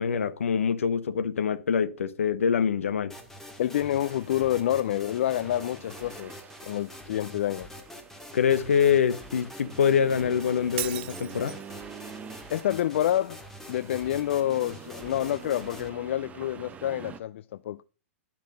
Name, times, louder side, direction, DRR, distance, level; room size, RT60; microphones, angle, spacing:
voice 1, 0.0-3.1 8.3-11.6, left 7 dB, 80° left, 0.9 m, -25 dB
sound 1, 3.1-15.9, left 1 dB, 5° left, 1.9 m, -45 dB
voice 2, 3.6-7.7 12.5-13.4 13.7-17.8, left 12 dB, 65° left, 0.4 m, -28 dB
Accelerating revving vroom, 3.7-17.2, right 7 dB, 20° right, 0.8 m, -47 dB
Shatter, 10.8-11.8, right 16 dB, 50° right, 0.6 m, -36 dB
10.5 x 5.9 x 5.3 m
hypercardioid pair, 120°, 7 cm